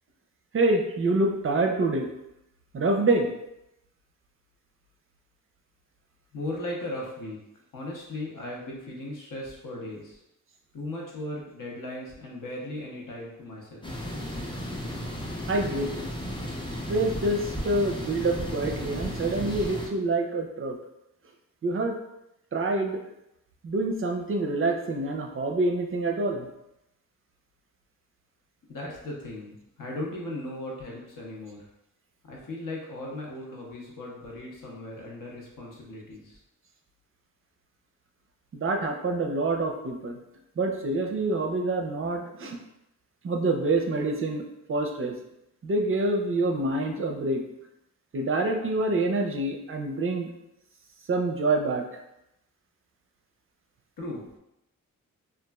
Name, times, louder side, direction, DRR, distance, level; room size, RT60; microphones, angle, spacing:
voice 1, 0.5-2.1 2.7-3.3 15.5-16.1 16.9-20.8 21.6-22.0 22.5-23.0 23.6-26.5 38.5-40.2 40.6-42.6 43.2-44.4 44.7-45.1 45.6-47.4 48.1-50.3 51.1-51.8, right 2 dB, 40° right, 3 dB, 0.4 m, -26 dB
voice 2, 6.3-7.4 7.7-10.2 10.7-13.9 28.7-31.6 32.3-36.4 54.0-54.3, left 1 dB, 70° left, -2 dB, 0.8 m, -37 dB
sound 1, 13.8-19.9, equal, 15° left, 0.5 m, -34 dB
3.0 x 2.3 x 2.3 m, 0.85 s
cardioid pair, 70°, 34 cm